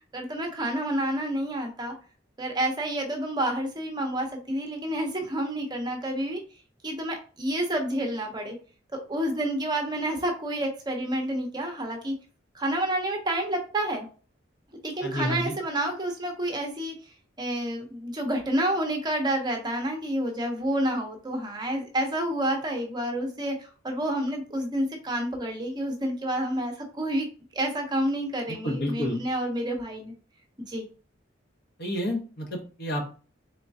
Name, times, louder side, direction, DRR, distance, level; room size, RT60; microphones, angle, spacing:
voice 1, 0.1-1.9 2.4-6.4 6.8-8.6 8.9-12.1 12.5-14.1 14.8-17.0 17.4-27.3 27.5-30.1 30.6-30.9, right 1 dB, 20° right, 3 dB, 0.8 m, -29 dB
voice 2, 15.0-15.5 28.5-29.2 31.8-33.2, left 1 dB, 55° left, 1 dB, 1.1 m, -30 dB
3.8 x 3.6 x 2.7 m, 0.37 s
head